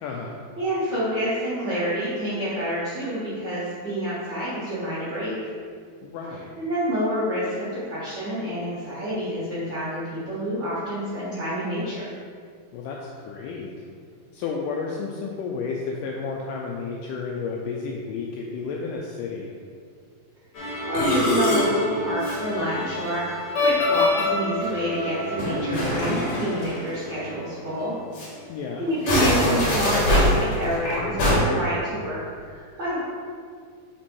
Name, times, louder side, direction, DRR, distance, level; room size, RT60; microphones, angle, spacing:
voice 1, 0.0-0.4 6.0-6.6 12.7-13.7 14.3-19.6 28.5-28.9, left 4 dB, 85° left, -1 dB, 1.9 m, -32 dB
voice 2, 0.6-5.5 6.6-12.1 20.9-28.0 28.8-33.0, equal, 85° right, -10 dB, 1.0 m, -28 dB
Musical instrument, 20.6-27.4 27.7-27.9 28.1-28.3 28.9-31.4, left 1 dB, 65° left, 1.9 m, -24 dB
5.0 x 4.3 x 4.6 m, 2.1 s
omnidirectional pair, 4.3 m